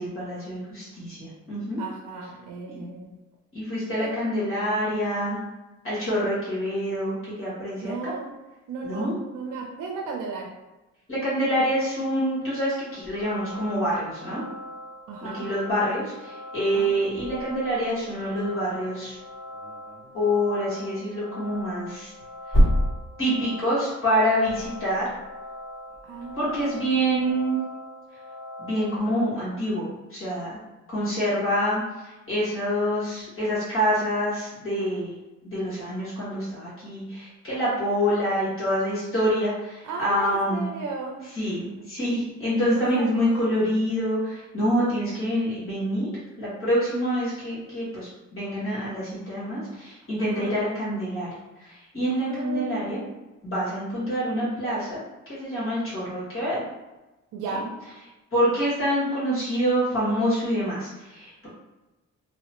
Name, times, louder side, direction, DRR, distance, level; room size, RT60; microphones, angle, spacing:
voice 1, 0.0-1.8 2.7-2.8 3.5-5.4 5.8-8.1 8.8-9.1 11.1-14.4 15.2-19.2 20.1-22.1 23.2-25.1 26.3-27.6 28.6-30.6 30.9-35.1 35.4-40.7 41.3-46.1 46.4-53.0 53.4-55.0 55.3-56.6 58.3-61.5, equal, 45° left, -9 dB, 1.5 m, -26 dB
voice 2, 1.8-3.1 4.0-4.2 7.7-8.3 8.7-10.5 15.1-15.5 16.7-17.0 26.0-26.8 39.8-41.2 42.7-43.5 50.2-50.6 52.1-53.1 57.3-57.7, right 4 dB, 85° right, 0 dB, 0.5 m, -35 dB
sound 1, 12.9-29.0, left 1 dB, 90° left, 0.5 m, -42 dB
sound 2, 13.0-14.0 16.7-20.3 21.5-27.4, equal, 25° left, 1.5 m, -30 dB
3.0 x 2.0 x 2.9 m, 1.1 s
cardioid pair, 90°, 30 cm